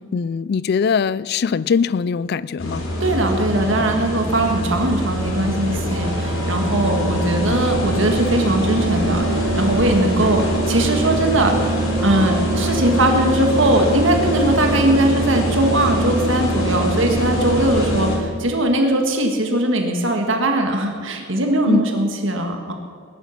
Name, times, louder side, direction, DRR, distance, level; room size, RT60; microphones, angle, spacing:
voice 1, 0.1-2.9 21.7-21.9, left 6 dB, 50° left, 0.3 m, -21 dB
sound 1, 2.6-18.2, right 1 dB, 65° left, 3.7 m, -23 dB
voice 2, 3.0-22.7, right 1 dB, 60° right, 1.7 m, -20 dB
sound 2, 5.5-15.9, left 1 dB, 25° right, 3.6 m, -32 dB
19.5 x 11.0 x 5.9 m
head